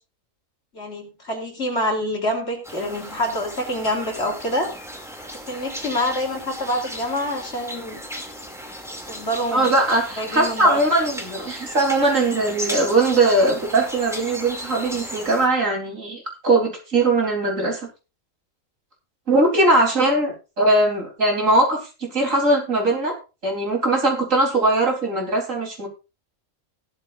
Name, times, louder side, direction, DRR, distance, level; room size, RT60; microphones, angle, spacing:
voice 1, 0.7-4.7 5.5-8.0 9.1-9.7 10.2-10.8, left 1 dB, 55° left, 2 dB, 3.6 m, -26 dB
sound 1, 2.6-15.5, equal, ahead, 2.4 m, -35 dB
voice 2, 9.5-17.8 19.3-23.2 23.4-25.9, right 2 dB, 70° right, 1 dB, 4.1 m, -20 dB
16.5 x 12.5 x 2.5 m, 0.29 s
omnidirectional pair, 1.4 m